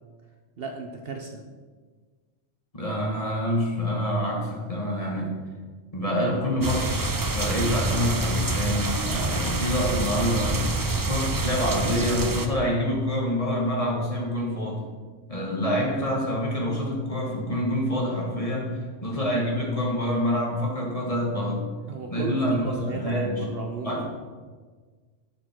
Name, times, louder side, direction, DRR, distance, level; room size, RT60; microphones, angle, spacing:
voice 1, 0.6-1.4 21.9-24.1, right 3 dB, 55° right, 4 dB, 0.9 m, -35 dB
voice 2, 2.7-5.3 5.9-10.6 10.9-14.8 15.3-21.6 22.1-23.4 23.8-24.1, equal, 25° left, -1 dB, 1.7 m, -26 dB
sound 1, 6.6-12.5, right 2 dB, 30° right, 0.4 m, -27 dB
11.5 x 6.5 x 4.6 m, 1.5 s
omnidirectional pair, 1.3 m